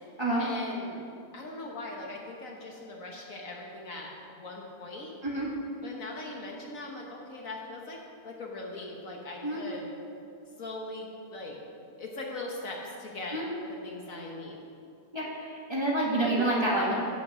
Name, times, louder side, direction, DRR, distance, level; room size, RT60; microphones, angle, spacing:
voice 1, 0.4-1.0 1.3-5.1 5.8-8.0 8.2-9.9 10.6-11.6 12.0-13.4 13.7-14.6, left 2 dB, 60° left, -1 dB, 1.6 m, -40 dB
voice 2, 15.1-16.9, right 1 dB, 15° right, -5 dB, 1.7 m, -28 dB
9.0 x 7.9 x 6.2 m, 2.6 s
omnidirectional pair, 1.7 m